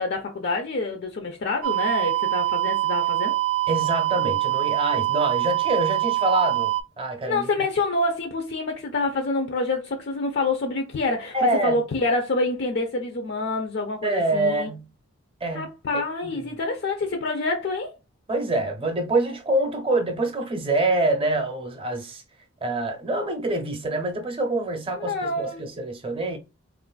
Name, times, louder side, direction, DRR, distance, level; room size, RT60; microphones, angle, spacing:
voice 1, 0.0-3.4 7.2-11.3 11.6-14.7 15.5-17.9 25.0-25.6, left 2 dB, 55° left, 0.4 m, -27 dB
sound 1, 1.6-6.8, right 16 dB, 90° right, 0.5 m, -24 dB
voice 2, 3.7-7.5 11.3-11.8 14.0-14.9 15.4-16.4 18.3-22.2 22.6-26.4, right 2 dB, 25° right, 0.6 m, -26 dB
3.7 x 2.4 x 2.2 m
head